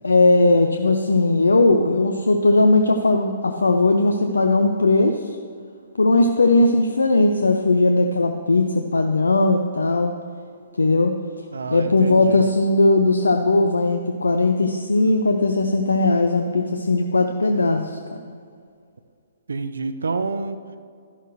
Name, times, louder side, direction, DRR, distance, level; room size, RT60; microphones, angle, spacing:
voice 1, 0.0-5.4 6.0-10.1 10.8-11.2 11.7-18.0 18.2-18.3, left 2 dB, 75° left, 5 dB, 0.6 m, -18 dB
voice 2, 11.5-12.5 19.5-20.6, right 4 dB, 70° right, 10 dB, 0.6 m, -28 dB
12.5 x 11.0 x 3.1 m, 2.2 s
figure-of-eight pair, 125°, 0 cm